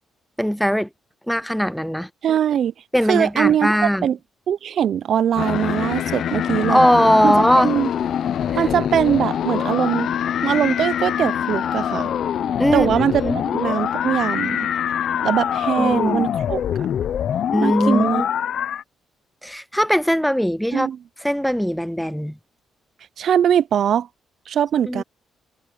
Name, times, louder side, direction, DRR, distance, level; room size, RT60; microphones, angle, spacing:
voice 1, 0.4-0.9 1.3-2.1 2.9-4.1 6.7-7.7 8.5-8.6 12.6-13.4 15.8-16.2 17.5-18.3 19.4-20.9 21.2-22.4 24.9-25.0, equal, ahead, 0.4 m, -20 dB
voice 2, 2.2-2.7 3.1-4.2 4.5-6.8 7.2-7.3 7.6-7.9 8.6-10.1 10.4-12.1 12.7-14.7 15.2-16.6 17.6-18.2 20.7-21.0 23.2-24.1 24.5-25.0, right 9 dB, 60° right, 0.4 m, -21 dB
sound 1, 5.4-18.8, left 9 dB, 60° left, 0.6 m, -24 dB
cardioid pair, 120°, 0 cm